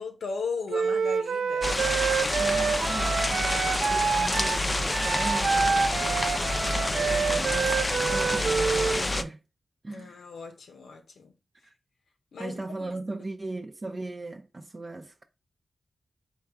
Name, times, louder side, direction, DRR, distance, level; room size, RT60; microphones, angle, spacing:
voice 1, 0.0-1.7 9.9-11.3 12.3-12.5 12.8-13.0, left 5 dB, 85° left, 0.7 m, -37 dB
Wind instrument woodwind instrument, 0.7-9.0, right 5 dB, 85° right, 0.3 m, -27 dB
sound 1, 1.6-9.2, left 2 dB, 30° left, 0.5 m, -28 dB
voice 2, 2.4-5.5 6.0-7.8 8.1-9.4 9.8-10.2 11.6-11.7 12.4-15.2, right 2 dB, 40° right, 0.6 m, -38 dB
3.8 x 2.4 x 4.5 m
cardioid pair, 60°, 0 cm